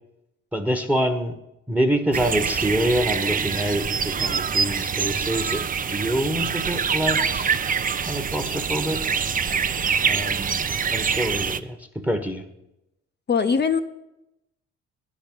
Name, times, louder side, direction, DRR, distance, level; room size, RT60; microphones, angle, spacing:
voice 1, 0.5-1.4 1.7-5.6 5.9-7.5 8.1-9.0 10.1-10.6 10.9-11.8 12.0-12.4, right 1 dB, 5° right, 8 dB, 1.0 m, -26 dB
sound 1, 2.1-11.6, right 6 dB, 30° right, 0.5 m, -25 dB
voice 2, 13.3-13.8, left 6 dB, 35° left, 9 dB, 0.7 m, -22 dB
10.0 x 6.1 x 8.6 m, 0.87 s
cardioid pair, 90°, 30 cm